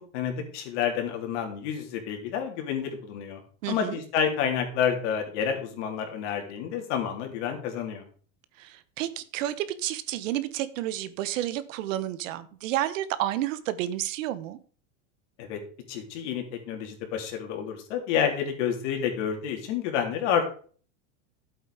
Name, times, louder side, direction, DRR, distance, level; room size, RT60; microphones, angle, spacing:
voice 1, 0.1-3.4 3.7-8.1 15.4-15.6 15.9-20.5, left 8 dB, 65° left, 3.4 m, -29 dB
voice 2, 3.6-4.0 8.6-14.6, right 13 dB, 75° right, 1.3 m, -30 dB
12.0 x 8.0 x 4.9 m
supercardioid pair, 155°, 39 cm